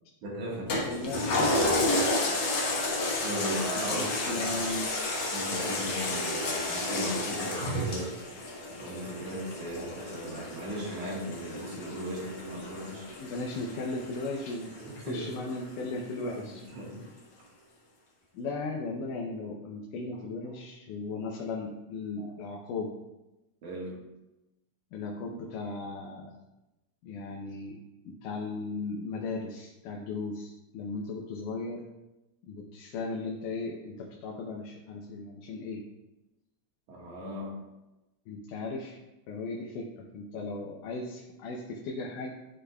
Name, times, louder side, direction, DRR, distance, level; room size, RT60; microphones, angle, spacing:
voice 1, 0.2-0.7 3.2-4.5 5.3-8.1 8.8-13.0 14.8-15.4 16.2-17.1 22.2-22.3 23.6-24.0 36.9-37.6, equal, 75° right, -4 dB, 3.0 m, -37 dB
Toilet flush, 0.7-15.5 16.0-16.1, left 2 dB, 55° left, 1.2 m, -31 dB
voice 2, 0.9-1.8 3.7-4.9 13.2-14.7 15.1-16.6 18.3-22.9 24.9-26.4 27.0-31.9 32.5-35.8 38.3-39.0 39.3-42.4, left 3 dB, 90° left, -1 dB, 2.3 m, -36 dB
12.0 x 5.0 x 2.3 m, 1.0 s
omnidirectional pair, 3.5 m